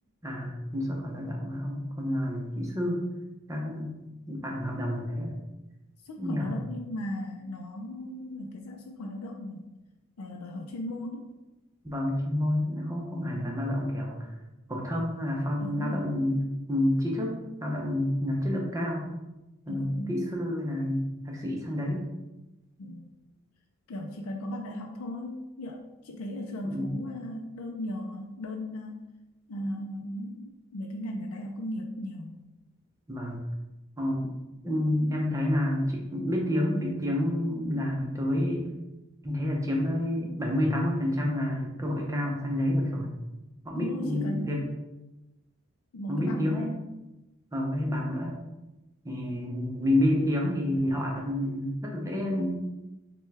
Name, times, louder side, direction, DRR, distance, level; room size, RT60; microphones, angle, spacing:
voice 1, 0.2-3.0 3.5-4.0 4.3-5.4 6.2-6.6 11.8-14.3 14.7-19.1 19.7-22.1 26.7-27.0 33.1-33.4 34.0-34.4 34.6-38.7 39.2-43.1 43.6-44.7 46.1-46.7 47.5-48.4 49.0-52.7, left 1 dB, 15° right, -1 dB, 0.7 m, -29 dB
voice 2, 6.0-9.6 10.2-11.3 15.6-16.2 19.7-20.2 22.8-23.1 23.9-29.0 29.5-32.4 43.7-44.5 45.9-46.8, left 1 dB, 85° left, 2 dB, 0.4 m, -36 dB
6.1 x 2.3 x 3.3 m, 1.0 s
head